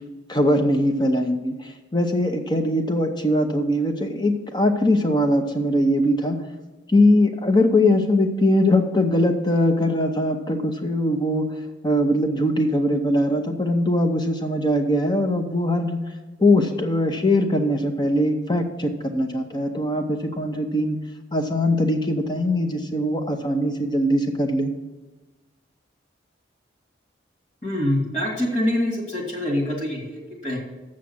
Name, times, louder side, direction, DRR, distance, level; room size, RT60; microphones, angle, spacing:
voice 1, 0.3-6.4 6.9-11.4 11.8-16.0 16.4-21.0 21.3-24.7, left 1 dB, 25° left, 5 dB, 0.7 m, -21 dB
voice 2, 27.6-30.6, left 1 dB, 40° left, 0 dB, 2.2 m, -25 dB
7.3 x 6.4 x 7.2 m, 1.2 s
head